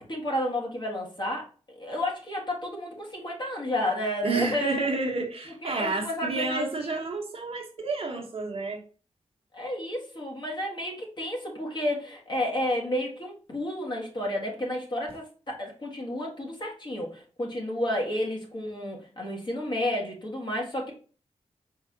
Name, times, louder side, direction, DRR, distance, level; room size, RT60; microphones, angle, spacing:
voice 1, 0.0-1.4 1.7-4.9 5.6-7.0 9.5-20.9, left 1 dB, 40° left, -1 dB, 1.6 m, -31 dB
voice 2, 4.2-8.8, right 3 dB, 55° right, 2 dB, 1.1 m, -30 dB
4.6 x 3.3 x 2.8 m, 0.38 s
cardioid pair, 70°, 12 cm